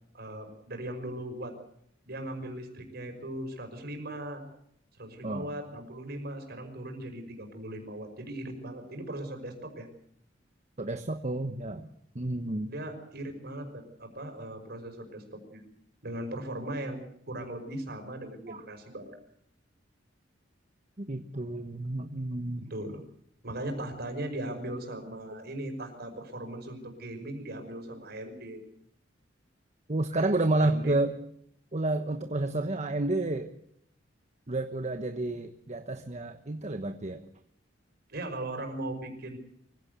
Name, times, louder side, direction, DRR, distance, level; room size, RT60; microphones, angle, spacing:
voice 1, 0.1-1.5 2.1-4.4 5.0-9.9 12.7-15.6 16.0-19.1 22.5-23.0 23.4-28.6 30.6-31.0 38.1-39.4, right 1 dB, 55° right, 5 dB, 5.6 m, -38 dB
voice 2, 10.8-11.9 12.1-12.7 18.4-18.6 21.0-22.7 29.9-31.2 31.7-33.5 34.5-37.2, right 2 dB, 35° right, 7 dB, 1.1 m, -30 dB
24.5 x 16.5 x 8.1 m, 0.69 s
head